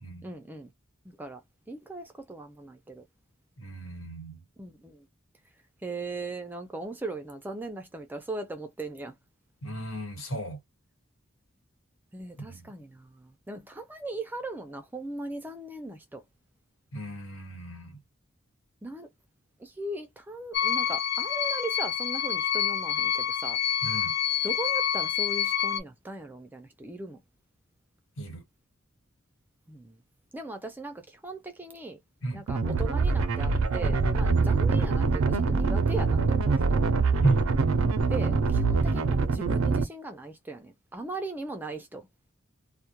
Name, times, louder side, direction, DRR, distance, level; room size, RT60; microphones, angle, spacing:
voice 1, 0.2-0.7 1.1-1.4 1.7-3.0 4.6-5.0 5.8-9.1 12.1-16.2 18.8-19.1 19.6-23.6 24.4-27.2 29.7-30.0 30.3-32.0 32.3-36.8 38.1-42.1, right 2 dB, 10° right, 0.3 m, -38 dB
voice 2, 3.6-4.4 9.6-10.6 12.4-12.7 16.9-18.0 23.8-24.1 28.2-28.4 32.2-32.4 37.2-37.4, right 2 dB, 85° left, 1.4 m, -33 dB
sound 1, 20.5-25.8, left 10 dB, 55° left, 0.5 m, -27 dB
sound 2, 32.5-39.8, right 4 dB, 85° right, 0.4 m, -24 dB
2.2 x 2.1 x 2.8 m
head